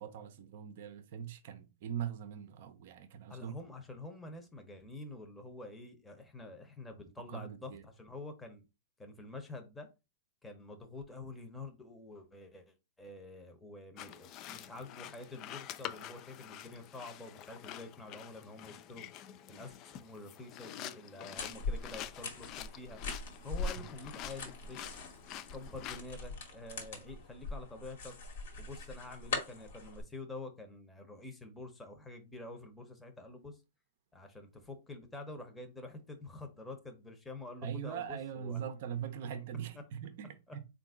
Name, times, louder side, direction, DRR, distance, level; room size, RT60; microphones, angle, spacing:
voice 1, 0.0-3.5 7.3-7.8 23.8-23.9 37.6-40.6, right 9 dB, 60° right, 0.5 m, -41 dB
voice 2, 3.3-8.6 9.0-9.9 10.4-19.0 19.5-23.0 23.4-25.0 25.5-28.2 28.6-33.6 34.1-38.6 39.7-39.8 40.5-40.6, left 2 dB, 10° left, 0.8 m, -48 dB
sound 1, 14.0-26.0, left 11 dB, 40° left, 0.3 m, -47 dB
sound 2, 21.4-30.0, left 3 dB, 70° left, 1.4 m, -42 dB
3.7 x 2.5 x 3.6 m
hypercardioid pair, 120°, 0 cm